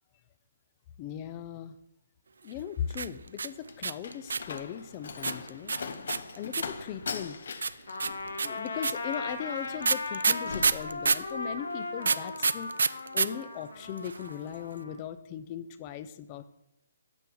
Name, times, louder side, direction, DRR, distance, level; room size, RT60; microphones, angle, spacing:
voice 1, 1.0-1.7 2.4-5.7 6.3-7.4 8.2-12.7 13.1-16.5, left 9 dB, 20° left, 12 dB, 0.3 m, -38 dB
sound 1, 2.9-4.6 5.2-6.8 7.6-11.3 12.0-13.3 13.5-13.6 13.8-14.3, right 5 dB, 85° right, 0.3 m, -27 dB
Slam, 3.2-11.6 11.9-12.4, left 5 dB, 55° left, 0.6 m, -41 dB
Trumpet, 7.9-15.0, left 3 dB, 85° left, 1.2 m, -38 dB
8.3 x 6.8 x 3.8 m, 0.82 s
hypercardioid pair, 175°, 0 cm